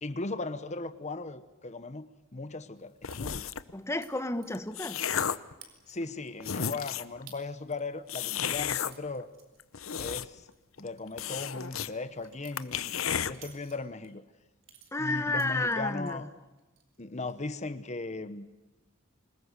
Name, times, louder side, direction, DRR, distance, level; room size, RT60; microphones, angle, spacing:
voice 1, 0.0-3.5 5.9-9.3 10.0-10.5 10.8-14.2 15.0-16.3 17.0-18.5, left 3 dB, 35° left, 12 dB, 1.0 m, -37 dB
sound 1, 3.0-3.7 4.4-5.5 6.1-6.2 6.4-7.2 8.1-8.9 9.6-10.5 10.8-10.9 11.2-11.9 12.2-12.3 12.6-13.3, left 8 dB, 90° left, 0.9 m, -32 dB
sound 2, 3.1-3.2 4.0-4.1 4.4-5.3 5.6-6.1 6.6-6.7 7.3-7.4 7.8-10.1 10.4-10.6 11.0-14.1 14.6-16.2 16.6-17.0 17.3-17.7, right 8 dB, 70° right, 4.6 m, -55 dB
voice 2, 3.7-5.0 14.9-16.2, left 2 dB, 15° left, 9 dB, 1.1 m, -31 dB
26.5 x 19.5 x 8.1 m, 1.1 s
head